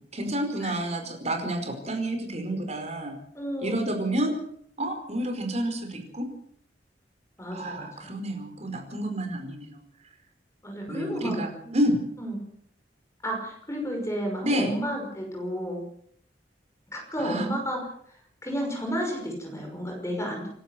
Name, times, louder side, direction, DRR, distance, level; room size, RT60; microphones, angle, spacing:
voice 1, 0.0-3.2 3.6-4.3 4.8-6.3 7.5-9.8 10.9-12.0 14.4-14.7 17.2-17.5, right 1 dB, 40° right, 6 dB, 4.9 m, -29 dB
voice 2, 3.3-4.0 7.4-8.2 10.6-11.7 12.2-12.4 13.2-15.8 16.9-17.8 18.4-20.5, equal, 15° left, 1 dB, 5.6 m, -32 dB
28.0 x 12.0 x 7.8 m, 0.65 s
head